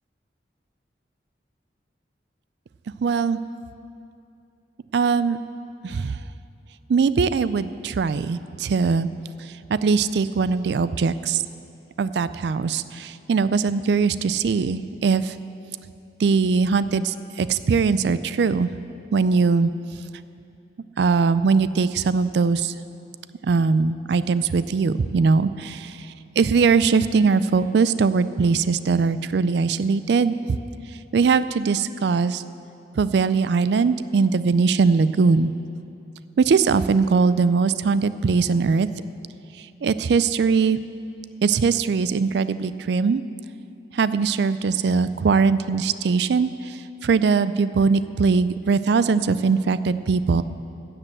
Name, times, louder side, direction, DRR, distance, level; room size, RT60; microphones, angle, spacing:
voice 1, 3.0-3.4 4.9-5.4 5.8-6.2 6.9-9.1 9.4-11.4 12.0-15.4 16.2-18.7 19.1-19.7 21.0-22.7 23.4-25.9 26.4-30.6 31.1-32.4 33.0-35.5 36.4-38.9 39.8-40.8 41.4-43.2 43.9-50.4, right 5 dB, 70° right, 15 dB, 0.4 m, -21 dB
12.5 x 7.7 x 7.7 m, 2.6 s
head